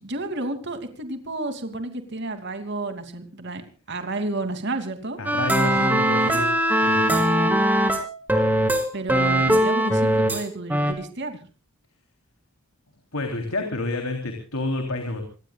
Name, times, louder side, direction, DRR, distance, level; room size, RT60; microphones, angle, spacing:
voice 1, 0.0-5.2 8.9-11.4, right 2 dB, 50° right, 7 dB, 2.9 m, -31 dB
voice 2, 5.2-6.5 6.8-7.4 13.1-15.2, left 2 dB, 75° left, 4 dB, 3.6 m, -29 dB
sound 1, 5.3-10.4 10.7-10.9, right 1 dB, 10° right, 2.9 m, -20 dB
26.5 x 19.0 x 2.4 m, 0.36 s
head